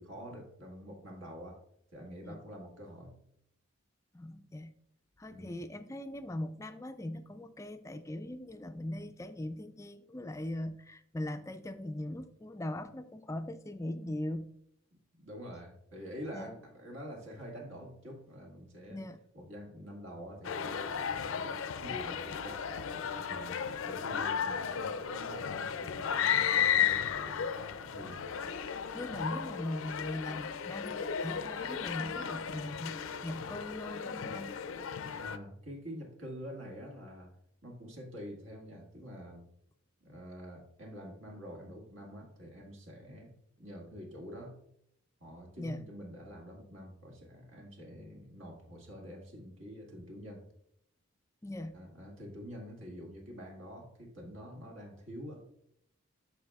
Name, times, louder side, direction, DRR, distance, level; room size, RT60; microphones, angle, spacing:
voice 1, 0.0-1.6 1.9-3.2 5.3-5.6 15.1-19.0 19.3-22.6 23.2-23.6 23.9-28.2 35.2-37.4 37.6-39.5 40.0-44.6 45.2-50.4 51.7-55.4, equal, 70° right, 0 dB, 1.9 m, -47 dB
voice 2, 4.1-4.7 5.2-14.5 16.3-16.5 18.9-19.2 28.9-34.5 45.6-45.8 51.4-51.7, left 1 dB, 15° left, 9 dB, 0.3 m, -40 dB
sound 1, 20.4-35.4, left 7 dB, 80° left, 0.4 m, -34 dB
11.5 x 4.7 x 2.3 m, 0.72 s
head